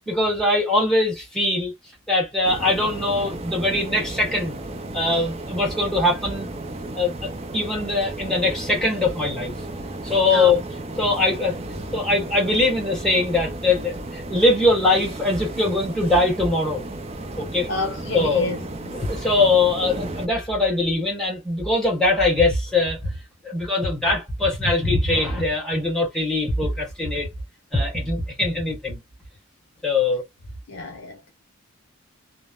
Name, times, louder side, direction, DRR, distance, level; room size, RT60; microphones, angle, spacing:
voice 1, 0.1-1.7 2.1-4.6 4.9-6.5 7.0-9.5 10.0-10.6 11.0-11.6 11.9-16.8 17.4-17.7 18.1-18.5 18.9-23.1 23.4-27.3 27.7-29.0 29.8-30.2, left 2 dB, ahead, 1.1 m, -22 dB
sound 1, 2.4-20.3, right 2 dB, 30° right, 0.4 m, -34 dB
voice 2, 17.7-19.0 30.7-31.3, left 2 dB, 60° left, 0.7 m, -30 dB
2.9 x 2.0 x 2.2 m
head